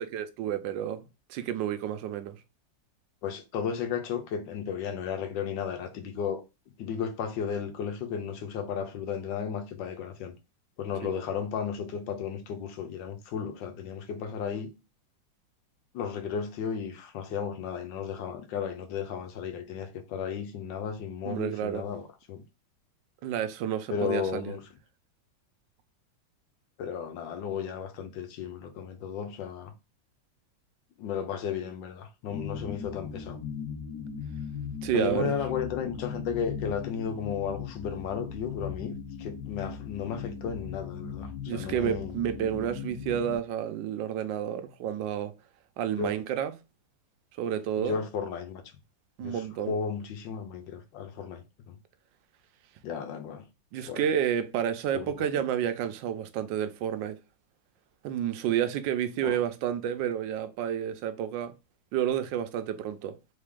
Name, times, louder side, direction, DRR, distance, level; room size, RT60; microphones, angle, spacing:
voice 1, 0.0-2.4 11.0-11.1 21.2-21.9 23.2-24.5 34.8-35.3 41.5-45.3 45.8-46.5 47.4-48.0 49.2-49.7 53.7-57.2 58.0-61.5 61.9-63.1, right 10 dB, 80° right, 1.3 m, -30 dB
voice 2, 3.2-6.4 6.8-10.3 10.8-14.7 15.9-22.4 23.9-24.6 26.8-29.7 31.0-33.4 34.9-42.1 46.0-46.1 47.8-48.6 49.2-51.8 52.8-53.5 53.9-54.0 54.9-55.4 59.2-59.4, left 7 dB, 80° left, 1.5 m, -34 dB
sound 1, 32.3-43.4, left 6 dB, 60° left, 1.4 m, -38 dB
3.7 x 3.3 x 3.6 m
omnidirectional pair, 2.0 m